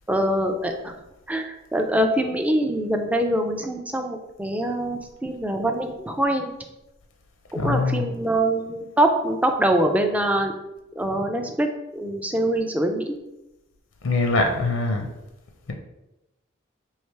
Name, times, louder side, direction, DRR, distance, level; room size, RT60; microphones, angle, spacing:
voice 1, 0.1-0.9 1.3-6.5 7.5-10.5 11.0-13.2, right 1 dB, 5° right, 4 dB, 0.3 m, -24 dB
voice 2, 7.5-8.1 14.0-15.1, left 3 dB, 90° left, 3 dB, 0.5 m, -23 dB
3.3 x 2.8 x 4.5 m, 0.95 s
head